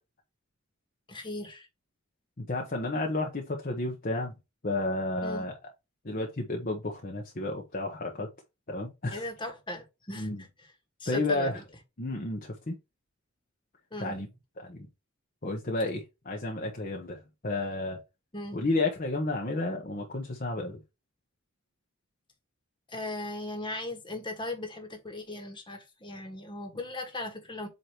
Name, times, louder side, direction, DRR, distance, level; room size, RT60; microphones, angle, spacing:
voice 1, 1.1-1.7 5.2-5.4 9.1-10.3 10.6-10.7 11.0-11.6 13.9-14.2 18.3-18.6 22.9-27.7, left 1 dB, 20° left, 1.4 m, -38 dB
voice 2, 2.4-4.3 4.6-5.6 6.0-8.3 8.7-9.2 10.2-10.4 11.1-11.6 12.0-12.8 14.0-14.3 14.6-14.9 15.4-18.0 18.5-20.8, left 2 dB, 40° left, 1.0 m, -32 dB
8.0 x 2.9 x 4.4 m
head